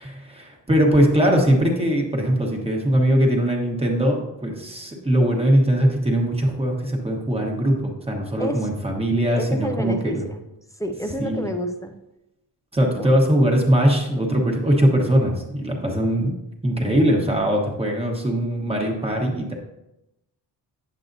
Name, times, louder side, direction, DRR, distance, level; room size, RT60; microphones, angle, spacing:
voice 1, 0.0-10.2 11.2-11.4 12.7-16.3 16.6-19.5, equal, 15° right, 0 dB, 1.1 m, -21 dB
voice 2, 9.4-10.4 10.8-11.9 12.9-13.1, equal, 10° left, 5 dB, 0.4 m, -29 dB
9.0 x 7.7 x 2.6 m, 0.90 s
wide cardioid pair, 175°, 42 cm